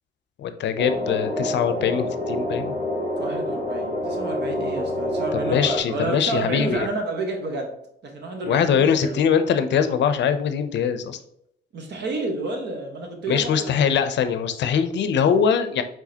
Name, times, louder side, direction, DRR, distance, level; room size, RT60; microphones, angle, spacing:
voice 1, 0.4-2.8 5.4-6.9 8.5-11.2 13.3-15.8, left 7 dB, 65° left, 10 dB, 0.6 m, -22 dB
sound 1, 0.8-5.8, left 1 dB, 30° right, 1.6 m, -27 dB
voice 2, 3.2-7.7 8.0-9.2 11.7-14.0, right 2 dB, 60° right, 2 dB, 1.3 m, -30 dB
4.8 x 3.8 x 2.8 m, 0.75 s
cardioid pair, 90°, 20 cm